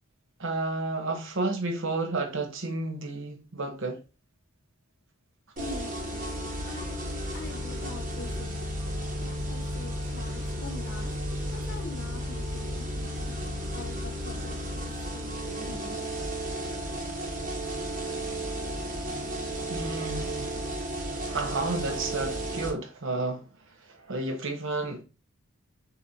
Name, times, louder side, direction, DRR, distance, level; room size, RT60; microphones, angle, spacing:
voice 1, 0.4-4.0 19.7-20.6 21.3-23.4 23.8-25.0, right 2 dB, 60° right, 0.9 m, -31 dB
voice 2, 5.6-6.2 6.7-8.6 9.2-16.0, left 2 dB, 50° left, 1.2 m, -44 dB
sound 1, 5.6-22.7, right 1 dB, 40° right, 1.3 m, -33 dB
6.5 x 2.8 x 2.7 m
head